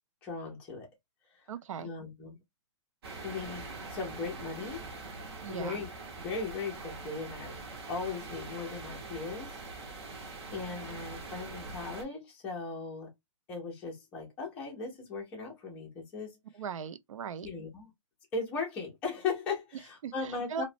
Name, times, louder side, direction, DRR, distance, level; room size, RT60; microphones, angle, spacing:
voice 1, 0.2-0.9 1.3-1.4 1.8-2.4 3.2-4.9 5.5-5.9 6.2-7.6 7.9-9.5 10.5-13.1 13.5-16.4 17.4-17.9 18.3-20.6, left 4 dB, 10° left, 0.5 m, -38 dB
voice 2, 1.5-1.9 5.4-5.8 16.5-17.5 20.0-20.6, right 7 dB, 85° right, 0.4 m, -39 dB
sound 1, 3.0-12.0, right 3 dB, 50° right, 0.9 m, -43 dB
3.0 x 2.1 x 2.4 m
hypercardioid pair, 180°, 16 cm